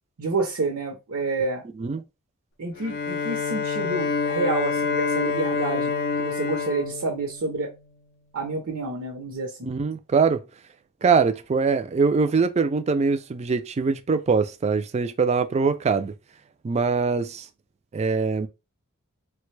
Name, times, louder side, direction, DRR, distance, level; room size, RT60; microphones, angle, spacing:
voice 1, 0.2-1.6 2.6-5.9 6.2-7.7 8.3-9.7, right 3 dB, 75° right, 0.7 m, -29 dB
Bowed string instrument, 2.8-8.0, left 5 dB, 50° left, 0.5 m, -27 dB
voice 2, 9.6-10.4 11.0-16.1 16.6-17.5 17.9-18.5, right 5 dB, 30° right, 0.3 m, -23 dB
3.2 x 2.2 x 3.2 m
head